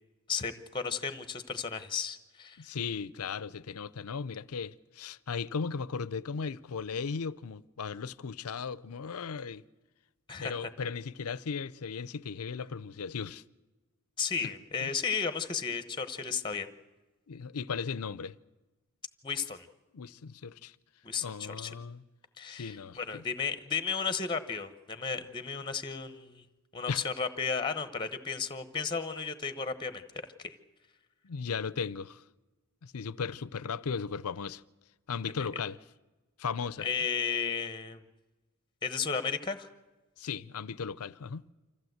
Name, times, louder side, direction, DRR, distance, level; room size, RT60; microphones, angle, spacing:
voice 1, 0.3-2.6 10.3-10.5 14.2-16.7 19.2-19.7 21.0-21.7 22.4-26.4 26.7-30.0 30.4-30.5 36.8-38.0 38.8-39.7, left 5 dB, 20° left, 0.9 m, -34 dB
voice 2, 2.6-9.6 10.4-13.4 14.8-15.0 17.3-18.4 19.9-20.8 21.2-22.0 22.5-23.2 26.9-27.0 31.2-32.2 32.8-34.6 35.1-35.8 36.4-36.9 40.2-41.4, left 5 dB, 90° left, 0.6 m, -36 dB
25.5 x 15.0 x 7.9 m
head